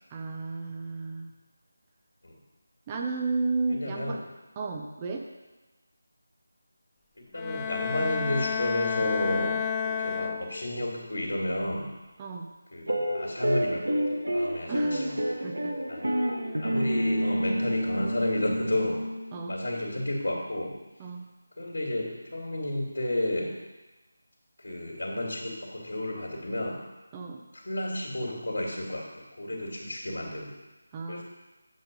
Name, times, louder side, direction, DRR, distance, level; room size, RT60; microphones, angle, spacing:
voice 1, 0.1-1.3 2.9-4.2 4.6-5.2 12.2-12.5 14.7-15.8 16.2-16.6 19.3-19.5 21.0-21.3 27.1-27.4 30.9-31.2, right 3 dB, 20° right, 1 dB, 0.7 m, -33 dB
voice 2, 3.7-4.2 7.3-11.9 12.7-15.1 15.9-16.2 16.6-19.0 19.5-20.8 21.6-23.5 24.6-26.8 27.5-30.5 31.1-31.2, left 1 dB, 75° left, -4 dB, 2.5 m, -32 dB
Bowed string instrument, 7.4-10.9, left 7 dB, 15° left, 0.4 m, -31 dB
sound 1, 12.9-19.4, equal, 80° right, 1.5 m, -29 dB
8.3 x 6.1 x 5.3 m, 1.1 s
figure-of-eight pair, 165°, 0 cm